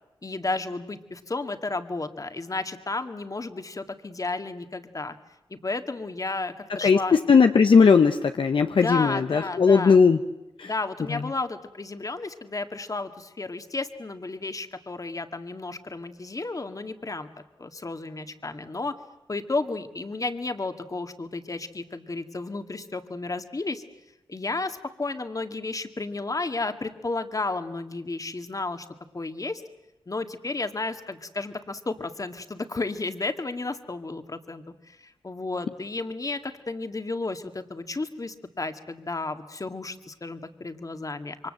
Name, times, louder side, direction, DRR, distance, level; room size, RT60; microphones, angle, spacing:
voice 1, 0.2-5.2 5.5-7.2 8.7-10.0 10.6-17.3 17.6-19.0 19.3-23.8 24.3-28.9 29.1-29.6 30.1-41.5, left 3 dB, 40° left, 8 dB, 2.1 m, -32 dB
voice 2, 6.8-10.2 10.6-10.7 11.1-11.2, left 5 dB, 65° left, 7 dB, 1.0 m, -18 dB
27.5 x 23.5 x 7.8 m, 0.95 s
cardioid pair, 55°, 9 cm